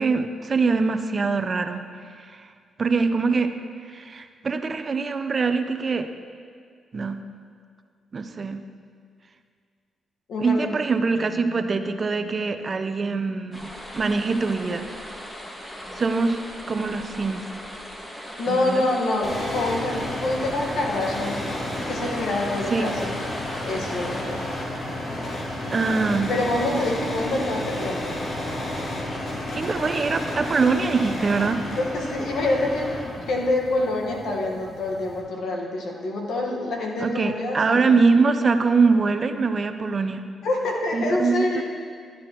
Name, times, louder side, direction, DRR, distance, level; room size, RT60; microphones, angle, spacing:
voice 1, 0.0-1.8 2.2-2.5 2.8-3.5 3.9-6.1 6.9-7.2 8.1-8.6 10.4-14.9 16.0-16.4 16.7-17.5 18.5-18.8 22.7-22.9 25.7-26.3 27.3-27.4 29.6-31.6 37.0-40.3 40.9-41.6, right 4 dB, 45° right, 9 dB, 0.6 m, -23 dB
voice 2, 10.3-10.7 18.4-21.4 21.9-23.2 23.6-24.4 26.3-28.2 31.8-37.8 40.4-41.6, left 2 dB, 70° left, 0 dB, 1.4 m, -26 dB
sound 1, 13.5-24.2, equal, 15° left, 1.8 m, -39 dB
sound 2, 19.2-35.2, left 1 dB, 50° left, 2.3 m, -31 dB
13.0 x 9.5 x 3.0 m, 2.1 s
supercardioid pair, 55°, 0 cm